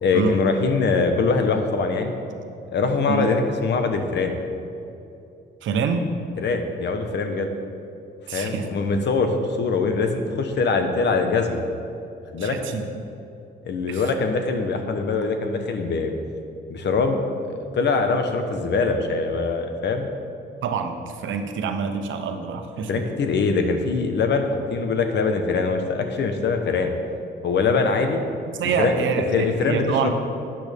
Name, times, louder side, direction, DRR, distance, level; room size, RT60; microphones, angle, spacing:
voice 1, 0.0-2.1 2.7-4.4 6.4-7.5 8.3-11.6 12.3-12.6 13.7-16.1 16.7-20.1 22.9-26.9 27.4-28.2 28.8-28.9 29.3-30.1, left 4 dB, 60° left, 6 dB, 1.1 m, -23 dB
voice 2, 5.6-6.1 8.3-8.7 12.4-13.1 13.9-14.1 20.6-23.1 28.6-30.1, right 5 dB, 75° right, 6 dB, 1.0 m, -26 dB
12.0 x 8.9 x 3.6 m, 2.7 s
cardioid pair, 90°, 20 cm